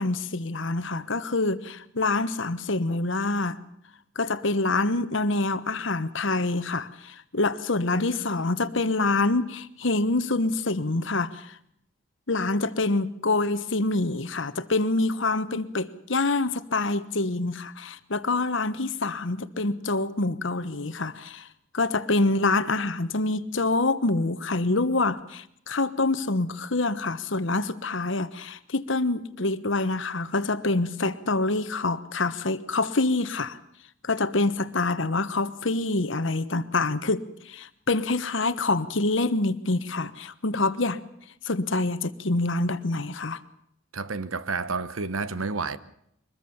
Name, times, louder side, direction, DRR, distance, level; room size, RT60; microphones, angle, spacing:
voice 1, 0.0-3.6 4.1-11.5 12.3-21.5 21.7-33.6 34.0-41.0 41.4-43.4, left 2 dB, 65° left, 1.2 m, -26 dB
voice 2, 43.9-45.8, right 4 dB, 85° right, 1.2 m, -30 dB
23.5 x 21.0 x 7.2 m
head